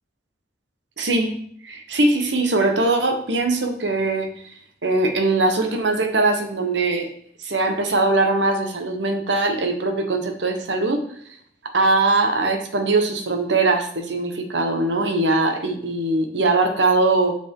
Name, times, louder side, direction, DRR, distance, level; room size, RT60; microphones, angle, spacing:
voice 1, 1.0-1.4 1.6-4.3 4.8-7.1 7.4-11.0 11.7-17.3, right 2 dB, 80° right, 5 dB, 1.1 m, -21 dB
6.9 x 5.9 x 3.7 m, 0.63 s
head